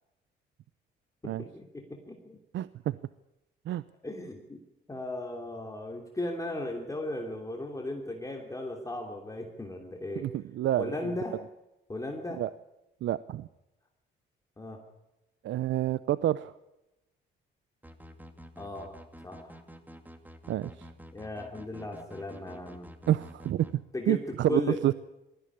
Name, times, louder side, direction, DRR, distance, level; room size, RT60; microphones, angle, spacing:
voice 1, 1.2-2.4 4.0-4.6 4.9-10.3 10.8-11.4 11.9-12.4 14.6-14.8 18.6-19.6 21.1-22.9 23.9-24.8, left 1 dB, 15° left, 2 dB, 3.0 m, -36 dB
voice 2, 2.5-3.0 3.7-3.8 10.2-11.1 12.4-12.5 13.0-13.5 15.4-16.5 20.5-20.9 23.1-24.9, right 13 dB, 70° right, 17 dB, 0.6 m, -29 dB
sound 1, 17.8-23.7, equal, 10° right, 2.3 m, -49 dB
19.5 x 14.5 x 9.9 m, 0.94 s
cardioid pair, 90°, 20 cm